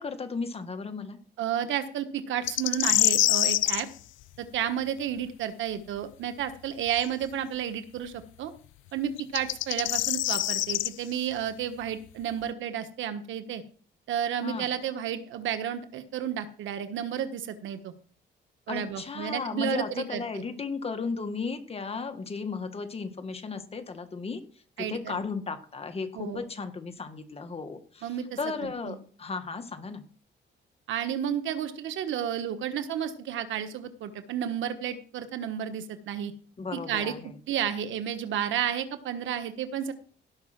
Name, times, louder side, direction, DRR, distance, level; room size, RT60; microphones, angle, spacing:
voice 1, 0.0-1.2 14.4-14.7 18.7-24.4 24.8-30.0 36.6-37.3, left 4 dB, 30° left, 7 dB, 1.7 m, -35 dB
voice 2, 1.4-3.9 4.4-8.5 8.9-13.6 14.1-17.9 18.7-20.4 24.8-25.2 26.1-26.4 28.0-29.0 30.9-36.3 36.7-37.1 37.5-39.9, right 9 dB, 85° right, 9 dB, 1.3 m, -32 dB
sound 1, 2.5-3.8 7.0-7.1 9.2-10.9, left 16 dB, 90° left, 0.4 m, -25 dB
17.0 x 5.7 x 6.0 m, 0.43 s
cardioid pair, 115°, 19 cm